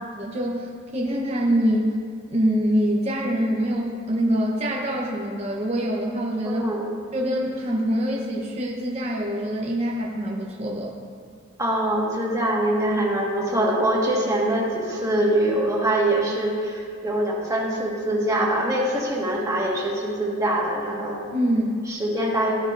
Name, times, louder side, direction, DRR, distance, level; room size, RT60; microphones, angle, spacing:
voice 1, 0.1-2.0 2.3-6.6 7.1-10.9 21.3-21.7, equal, 30° right, -3 dB, 1.0 m, -24 dB
voice 2, 6.4-6.9 11.6-21.2 21.9-22.5, right 1 dB, 15° right, -4 dB, 1.8 m, -23 dB
17.0 x 9.6 x 2.7 m, 2.2 s
head